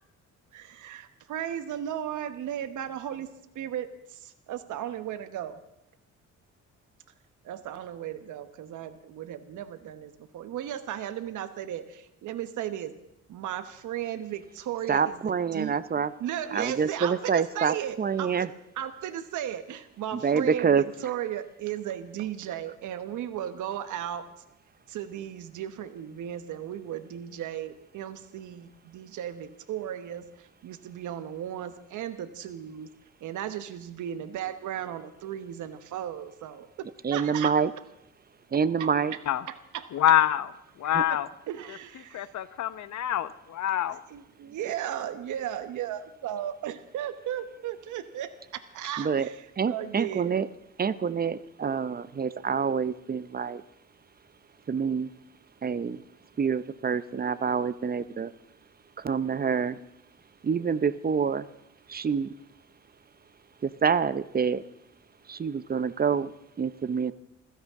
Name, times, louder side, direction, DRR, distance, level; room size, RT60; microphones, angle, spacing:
voice 1, 0.5-3.3 3.5-5.6 7.4-12.9 13.3-15.8 16.2-18.5 18.8-24.3 24.9-32.9 33.2-37.5 38.5-39.2 39.5-39.9 41.1-41.2 41.5-42.3 44.1-50.4 51.6-51.7, right 10 dB, 80° right, 10 dB, 1.2 m, -36 dB
voice 2, 14.9-16.1 16.5-18.5 20.1-20.8 37.0-37.7 38.5-39.1 40.8-41.0 49.0-49.3 49.6-50.5 50.8-53.6 54.7-55.1 55.6-56.0 56.4-58.3 59.0-59.8 60.4-61.5 61.9-62.3 63.6-64.6 65.3-67.1, right 6 dB, 30° right, 15 dB, 0.6 m, -27 dB
voice 3, 39.9-40.5 40.8-41.3 42.1-44.0, left 11 dB, 65° left, 14 dB, 1.0 m, -25 dB
24.5 x 16.0 x 3.7 m, 0.82 s
cardioid pair, 90°, 30 cm